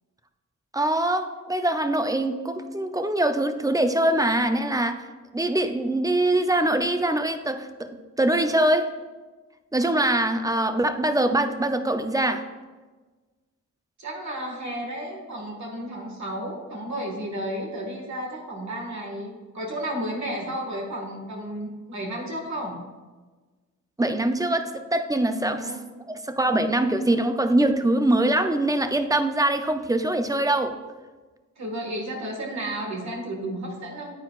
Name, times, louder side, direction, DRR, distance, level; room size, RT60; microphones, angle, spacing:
voice 1, 0.7-5.0 5.3-8.9 9.7-12.4 24.0-25.7 26.1-30.8, right 1 dB, 10° right, 8 dB, 0.4 m, -23 dB
voice 2, 14.0-22.8 25.4-25.8 31.6-34.1, right 1 dB, 60° right, 0 dB, 1.7 m, -32 dB
9.5 x 9.1 x 2.4 m, 1.3 s
wide cardioid pair, 125°, 31 cm